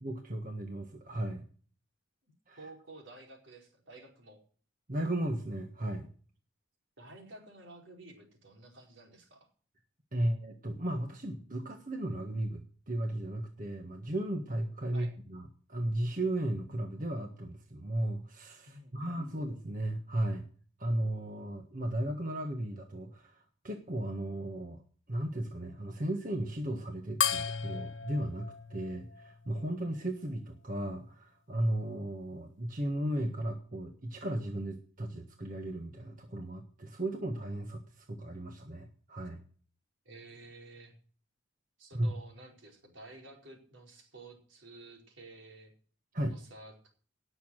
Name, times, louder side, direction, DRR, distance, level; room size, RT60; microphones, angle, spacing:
voice 1, 0.0-1.4 2.5-2.6 4.9-6.1 10.1-12.6 12.9-15.4 15.7-20.4 20.8-24.8 25.1-39.4 41.9-42.1 46.1-46.3, right 1 dB, 45° right, 4 dB, 1.5 m, -35 dB
voice 2, 2.6-4.4 7.0-9.5 14.9-15.1 18.6-19.4 40.0-40.9 41.8-45.7 46.3-46.9, right 2 dB, 75° right, 1 dB, 4.7 m, -52 dB
sound 1, 27.2-30.0, left 7 dB, 75° left, 1.1 m, -35 dB
18.5 x 7.0 x 6.4 m, 0.44 s
head